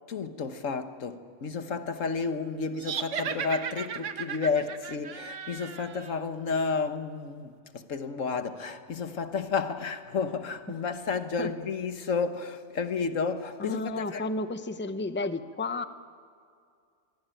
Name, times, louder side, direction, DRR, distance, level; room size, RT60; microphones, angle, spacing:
voice 1, 0.1-14.2, left 5 dB, 90° left, 1.7 m, -31 dB
sound 1, 2.8-6.2, right 7 dB, 75° right, 1.4 m, -36 dB
voice 2, 13.6-15.8, left 2 dB, 10° left, 0.8 m, -32 dB
26.0 x 21.5 x 9.1 m
omnidirectional pair, 1.3 m